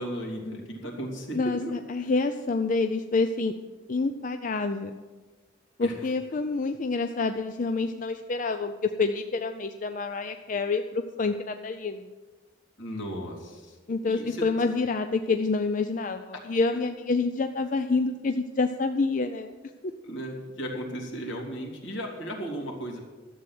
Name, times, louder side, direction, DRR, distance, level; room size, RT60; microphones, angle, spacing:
voice 1, 0.0-1.7 5.8-5.9 12.8-13.8 14.1-14.5 20.0-23.0, right 1 dB, 75° left, 0 dB, 2.8 m, -35 dB
voice 2, 1.3-3.5 3.9-4.9 5.8-12.1 13.9-19.5, left 3 dB, 40° left, 7 dB, 0.5 m, -27 dB
12.5 x 7.8 x 7.7 m, 1.3 s
head